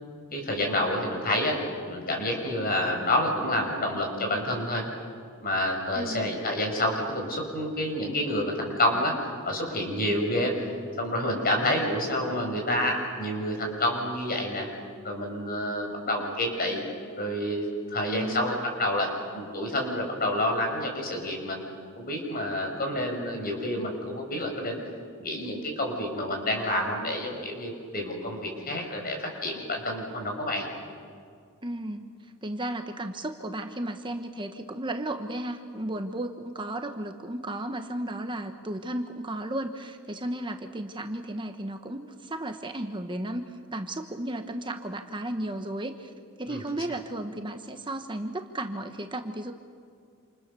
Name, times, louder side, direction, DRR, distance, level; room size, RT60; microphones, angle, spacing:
voice 1, 0.3-1.6 1.9-4.8 5.4-9.1 9.4-14.7 15.0-16.8 17.2-19.1 19.3-21.6 22.0-24.8 25.2-30.7 46.5-46.6, left 1 dB, 45° left, 2 dB, 6.1 m, -28 dB
voice 2, 5.9-6.3 18.1-18.5 31.6-32.1 32.4-46.1 46.4-49.5, right 1 dB, 25° right, 6 dB, 1.2 m, -34 dB
28.0 x 28.0 x 6.9 m, 2.2 s
head